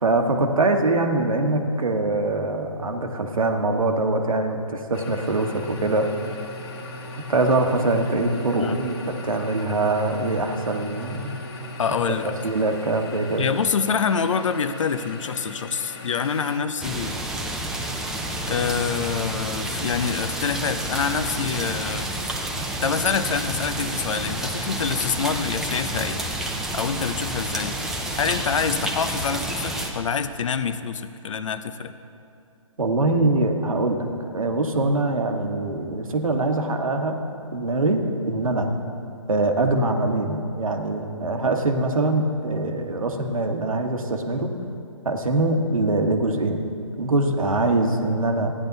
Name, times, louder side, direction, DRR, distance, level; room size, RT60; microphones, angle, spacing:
voice 1, 0.0-6.1 7.1-11.4 12.4-13.5 32.8-38.7 39.3-44.5 45.0-46.7 47.0-48.5, right 2 dB, 80° right, 4 dB, 1.3 m, -23 dB
sound 1, 4.9-16.6, left 1 dB, 50° left, 1.5 m, -38 dB
voice 2, 11.8-12.3 13.4-17.2 18.5-22.1 22.8-26.2 26.7-27.8 28.2-31.9, left 6 dB, 65° left, 11 dB, 0.7 m, -26 dB
sound 2, 16.8-29.9, right 1 dB, 5° right, 0.6 m, -29 dB
14.5 x 10.0 x 4.0 m, 2.6 s
hypercardioid pair, 140°, 17 cm